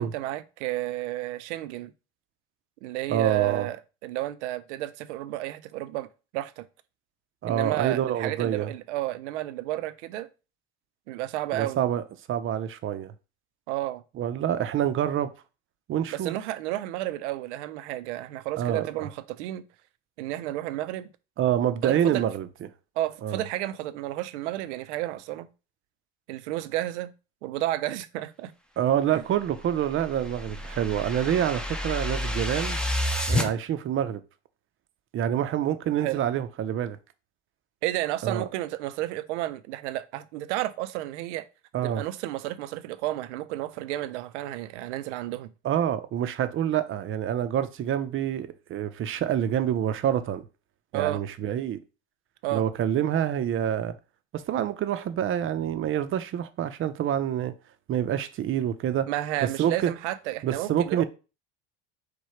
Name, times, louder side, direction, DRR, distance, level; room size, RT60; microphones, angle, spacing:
voice 1, 0.0-1.9 2.8-6.1 6.3-6.7 7.5-10.3 11.1-11.8 13.7-14.0 16.1-19.6 20.2-21.1 21.8-22.2 23.0-25.5 26.3-27.1 27.4-28.5 29.1-29.2 33.3-33.5 36.0-36.2 37.8-41.5 41.8-45.5 50.9-51.2 52.4-52.6 59.1-61.0, right 15 dB, 90° right, 0.5 m, -32 dB
voice 2, 3.1-3.7 7.4-8.7 11.5-13.1 14.2-15.3 15.9-16.3 18.6-19.1 21.4-22.5 23.2-23.4 28.8-32.8 33.3-34.2 35.1-37.0 38.2-38.5 41.7-42.0 45.6-50.4 50.9-51.8 52.5-54.0 54.3-57.5 57.9-59.1 59.4-59.9 60.4-61.0, right 10 dB, 35° right, 0.5 m, -27 dB
sound 1, 29.4-33.5, left 1 dB, 5° left, 0.5 m, -30 dB
4.8 x 2.2 x 4.3 m
supercardioid pair, 100°, 34 cm